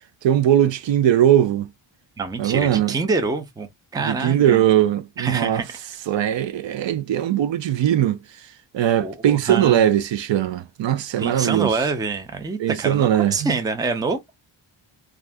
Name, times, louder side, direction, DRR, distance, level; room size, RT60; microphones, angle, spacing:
voice 1, 0.2-1.7 2.4-2.9 4.0-5.6 6.1-8.2 8.7-11.7 12.6-13.6, right 11 dB, 70° right, 0.5 m, -20 dB
voice 2, 2.2-4.6 5.2-5.6 9.0-9.8 11.2-14.4, right 4 dB, 10° right, 0.4 m, -26 dB
2.6 x 2.4 x 3.4 m
wide cardioid pair, 165°, 46 cm